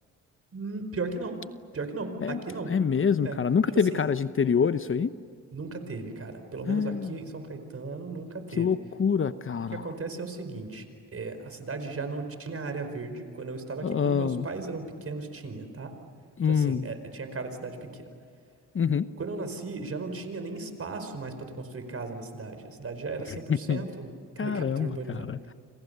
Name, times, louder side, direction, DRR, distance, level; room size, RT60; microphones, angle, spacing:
voice 1, 0.5-1.4 1.7-2.7 3.2-3.4 3.7-4.0 5.5-8.7 9.7-10.8 11.1-15.9 16.5-18.1 19.2-25.3, right 3 dB, 45° right, 8 dB, 4.9 m, -36 dB
voice 2, 2.7-5.1 6.7-7.2 8.6-9.8 13.8-14.5 16.4-16.9 18.7-19.1 23.5-23.8 24.4-25.5, left 6 dB, 40° left, 13 dB, 0.9 m, -26 dB
29.5 x 26.0 x 6.8 m, 2.2 s
supercardioid pair, 65°, 32 cm